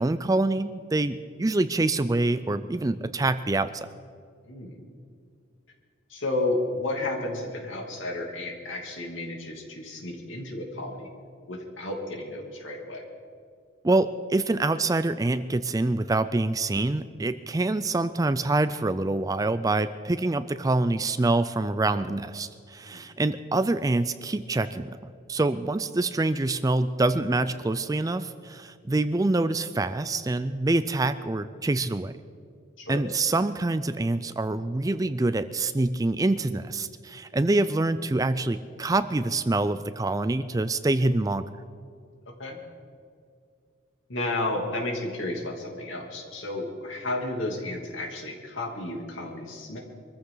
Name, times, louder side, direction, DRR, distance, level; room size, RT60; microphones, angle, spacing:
voice 1, 0.0-3.9 13.8-32.1 32.9-41.5, right 2 dB, 15° right, 12 dB, 0.3 m, -26 dB
voice 2, 4.5-4.8 6.1-11.1 11.5-13.0 22.8-23.0 32.8-33.0 42.3-42.6 44.1-49.8, left 2 dB, 70° left, 1 dB, 2.8 m, -32 dB
24.0 x 14.5 x 3.9 m, 2.3 s
head